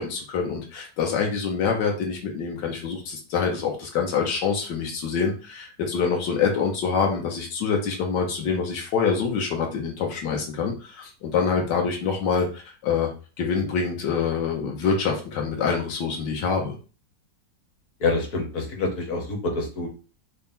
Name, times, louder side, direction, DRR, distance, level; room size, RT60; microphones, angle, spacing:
voice 1, 0.0-13.1 13.4-16.8, left 5 dB, 80° left, 1 dB, 1.4 m, -26 dB
voice 2, 18.0-19.9, left 3 dB, 55° left, 1 dB, 1.2 m, -26 dB
4.2 x 2.1 x 3.5 m, 0.35 s
omnidirectional pair, 1.9 m